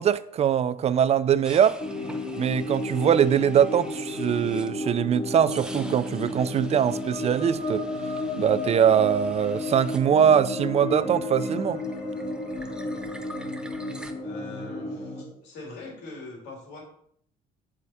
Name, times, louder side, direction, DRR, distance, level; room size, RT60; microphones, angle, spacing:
voice 1, 0.0-1.8 2.4-7.8 8.4-11.8, right 9 dB, 40° right, 0.4 m, -22 dB
sound 1, 1.4-5.0 5.4-10.9 11.2-14.1, right 1 dB, 5° right, 0.8 m, -46 dB
sound 2, 1.8-15.2, left 2 dB, 40° left, 2.0 m, -32 dB
voice 2, 14.2-16.8, left 3 dB, 80° left, 2.9 m, -42 dB
8.1 x 4.9 x 4.2 m
cardioid pair, 110°, 17 cm